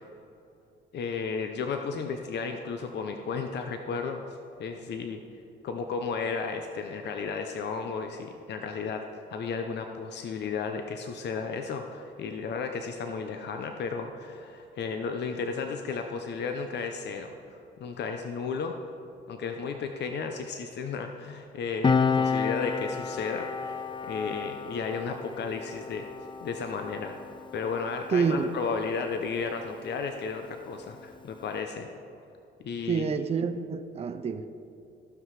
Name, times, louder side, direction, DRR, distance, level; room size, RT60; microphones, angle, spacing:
voice 1, 0.9-4.2 4.6-5.2 5.6-18.8 19.3-26.0 26.4-31.9 32.6-33.0, left 5 dB, 60° left, 5 dB, 0.7 m, -34 dB
Piano, 21.8-28.9 29.1-29.4, left 5 dB, 25° left, 0.4 m, -31 dB
voice 2, 28.1-28.5 32.9-34.6, right 5 dB, 30° right, 9 dB, 0.5 m, -28 dB
15.0 x 5.9 x 4.8 m, 2.7 s
cardioid pair, 90°, 20 cm